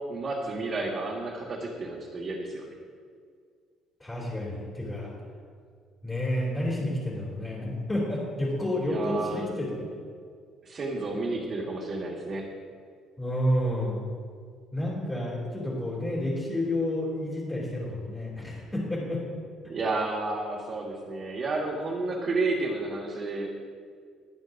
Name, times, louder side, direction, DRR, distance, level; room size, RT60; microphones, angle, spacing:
voice 1, 0.1-2.7 8.9-9.5 10.6-12.4 19.7-23.5, right 3 dB, 35° right, -3 dB, 1.7 m, -31 dB
voice 2, 4.0-5.1 6.0-9.9 13.2-14.0 14.7-19.2, left 1 dB, 15° left, -6 dB, 3.1 m, -30 dB
22.0 x 8.0 x 2.7 m, 2.1 s
cardioid pair, 125°, 0 cm